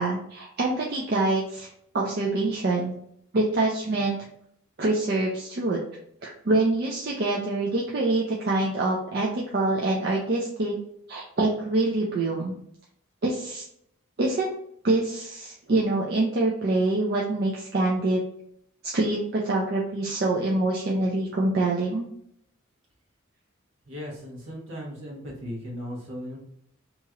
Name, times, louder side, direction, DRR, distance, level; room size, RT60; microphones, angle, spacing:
voice 1, 0.0-1.7 1.9-2.9 3.3-4.2 4.8-5.8 6.2-10.7 11.1-12.5 13.2-13.6 14.2-14.5 14.8-18.2 18.8-22.1, right 2 dB, 45° right, -3 dB, 0.4 m, -25 dB
voice 2, 23.9-26.4, equal, 65° right, -3 dB, 1.1 m, -37 dB
2.9 x 2.4 x 2.9 m, 0.70 s
head